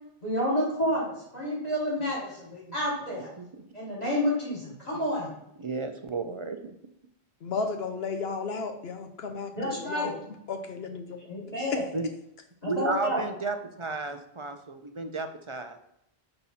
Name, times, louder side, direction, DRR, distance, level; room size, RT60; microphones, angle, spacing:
voice 1, 0.2-3.3 3.7-5.3 9.5-10.1 11.3-11.8 12.6-13.2, left 1 dB, 40° left, -6 dB, 3.3 m, -29 dB
voice 2, 5.6-6.6 11.9-12.1 12.7-15.8, right 3 dB, 40° right, 7 dB, 0.5 m, -33 dB
voice 3, 7.4-10.2 10.5-11.2 11.7-11.8, left 5 dB, 70° left, 6 dB, 0.9 m, -33 dB
6.0 x 5.4 x 4.1 m, 0.78 s
omnidirectional pair, 1.1 m